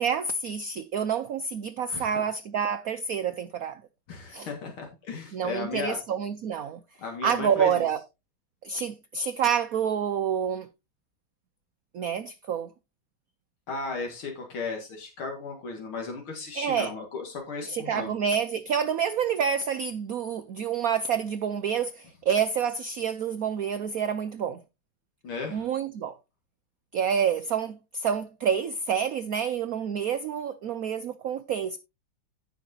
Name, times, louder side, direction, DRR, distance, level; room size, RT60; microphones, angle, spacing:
voice 1, 0.0-3.8 4.3-4.5 5.3-6.8 7.2-8.0 8.6-10.7 11.9-12.7 16.5-16.9 17.7-24.6 25.5-26.2 26.9-31.8, right 7 dB, 70° right, 0.8 m, -28 dB
voice 2, 4.1-6.0 7.0-7.9 13.7-18.1 25.2-25.7, left 4 dB, 80° left, 2.7 m, -35 dB
16.0 x 5.9 x 2.7 m
omnidirectional pair, 2.3 m